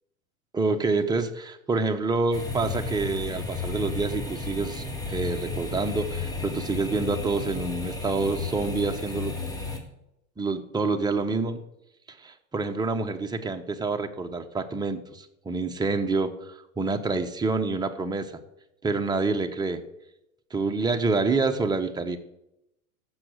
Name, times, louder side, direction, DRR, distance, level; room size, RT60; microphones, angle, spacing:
voice 1, 0.5-9.3 10.4-11.6 12.2-18.3 18.8-19.8 20.5-22.2, right 3 dB, 10° right, 5 dB, 1.0 m, -27 dB
sound 1, 2.3-9.8, left 3 dB, 10° left, 2.1 m, -33 dB
14.5 x 6.1 x 6.3 m, 0.84 s
hypercardioid pair, 110°, 42 cm